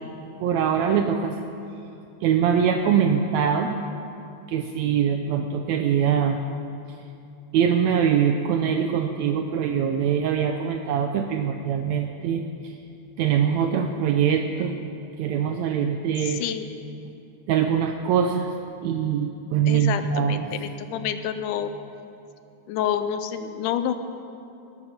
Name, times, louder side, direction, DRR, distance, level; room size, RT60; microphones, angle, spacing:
voice 1, 0.4-1.4 2.2-3.8 4.5-6.4 7.5-12.7 13.2-14.8 15.2-16.4 17.5-18.5 18.8-20.5, right 8 dB, 75° right, 5 dB, 1.8 m, -23 dB
voice 2, 16.2-16.7 19.7-21.7 22.7-23.9, left 9 dB, 85° left, 10 dB, 2.2 m, -28 dB
18.5 x 10.5 x 5.9 m, 2.8 s
omnidirectional pair, 3.5 m